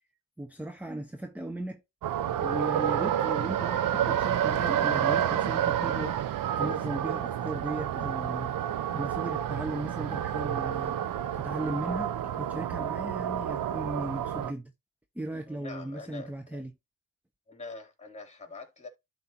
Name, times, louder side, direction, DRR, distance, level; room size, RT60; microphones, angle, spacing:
voice 1, 0.4-1.8 2.4-8.5 8.9-11.0 11.3-14.7 15.2-16.7, right 1 dB, 5° right, 0.6 m, -37 dB
sound 1, 2.0-14.5, right 10 dB, 65° right, 0.7 m, -29 dB
voice 2, 15.5-16.6 17.5-18.9, left 3 dB, 20° left, 3.2 m, -44 dB
12.5 x 4.2 x 2.9 m
cardioid pair, 90°, 35 cm